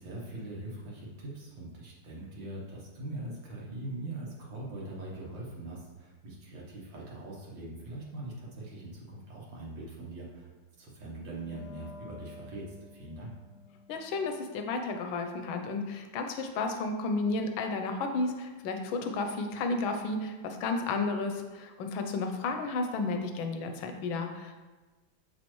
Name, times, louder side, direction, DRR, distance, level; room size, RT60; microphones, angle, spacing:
voice 1, 0.0-10.5 10.8-13.3, right 2 dB, 70° right, -4 dB, 1.9 m, -42 dB
Wind instrument woodwind instrument, 11.3-16.4, left 3 dB, 65° left, 1.1 m, -53 dB
voice 2, 13.9-24.7, left 3 dB, 85° left, 5 dB, 1.5 m, -32 dB
6.6 x 5.2 x 3.0 m, 1.3 s
omnidirectional pair, 2.1 m